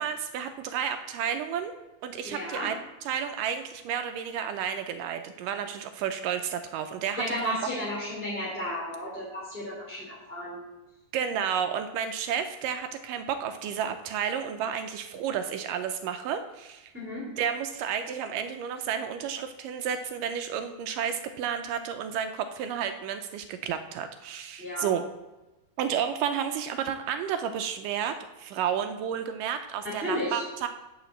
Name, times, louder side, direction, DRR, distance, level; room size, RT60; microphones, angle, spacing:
voice 1, 0.0-1.7 2.0-2.8 3.1-7.6 11.1-16.9 17.4-25.1 25.8-30.7, right 8 dB, 80° right, 8 dB, 2.0 m, -31 dB
voice 2, 2.2-2.7 7.2-10.6 16.9-17.3 24.6-24.9 29.8-30.4, equal, 5° right, -4 dB, 2.2 m, -33 dB
10.0 x 5.0 x 7.7 m, 1.0 s
omnidirectional pair, 4.2 m